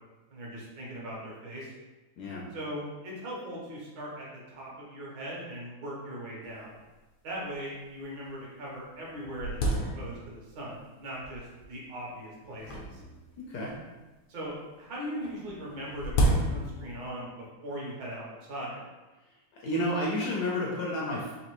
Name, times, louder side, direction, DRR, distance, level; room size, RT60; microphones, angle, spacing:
voice 1, 0.3-1.7 2.5-6.7 7.2-9.6 9.9-13.0 14.3-18.8, equal, 75° right, -4 dB, 1.6 m, -39 dB
sound 1, 6.4-6.5 6.7-6.8 7.5-7.6 8.3-8.4 8.7-10.5 11.2-11.7 12.6-13.9 15.2-17.0, right 1 dB, 85° left, 1.5 m, -31 dB
voice 2, 13.4-13.7 19.5-21.3, left 1 dB, 70° left, -3 dB, 1.0 m, -31 dB
4.1 x 2.6 x 2.9 m, 1.1 s
omnidirectional pair, 2.1 m